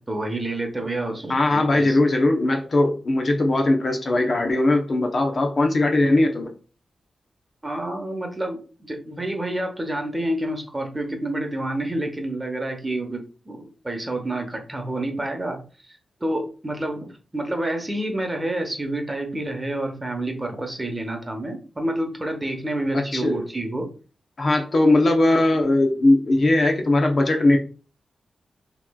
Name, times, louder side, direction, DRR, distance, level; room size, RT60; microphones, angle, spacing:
voice 1, 0.1-2.0 7.6-15.6 15.9-23.9, right 1 dB, 20° right, 1.0 m, -28 dB
voice 2, 1.3-6.5 22.9-23.4 24.4-27.6, left 2 dB, 50° left, 0.8 m, -19 dB
5.8 x 3.0 x 2.3 m
cardioid pair, 80°, 0 cm